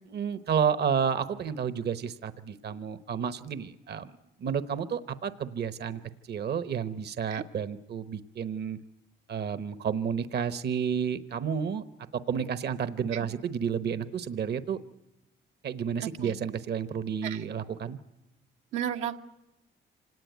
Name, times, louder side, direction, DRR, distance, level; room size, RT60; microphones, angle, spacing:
voice 1, 0.1-4.1 4.4-8.8 9.3-11.8 12.1-14.8 15.6-18.0, right 7 dB, 55° right, 12 dB, 1.0 m, -31 dB
voice 2, 16.0-16.3 17.2-17.4 18.7-19.2, right 9 dB, 90° right, 3 dB, 1.4 m, -34 dB
25.5 x 18.5 x 9.3 m, 0.97 s
cardioid pair, 90°, 20 cm